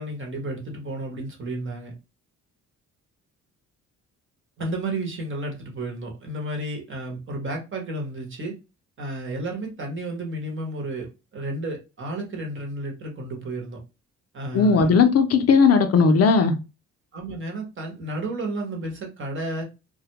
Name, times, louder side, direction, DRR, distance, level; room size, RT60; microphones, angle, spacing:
voice 1, 0.0-1.9 4.6-8.5 9.0-13.8 14.3-15.0 17.1-19.6, right 2 dB, 40° right, 1 dB, 1.0 m, -32 dB
voice 2, 14.5-16.6, left 5 dB, 55° left, 7 dB, 0.5 m, -17 dB
2.2 x 2.1 x 2.9 m, 0.28 s
cardioid pair, 90°, 30 cm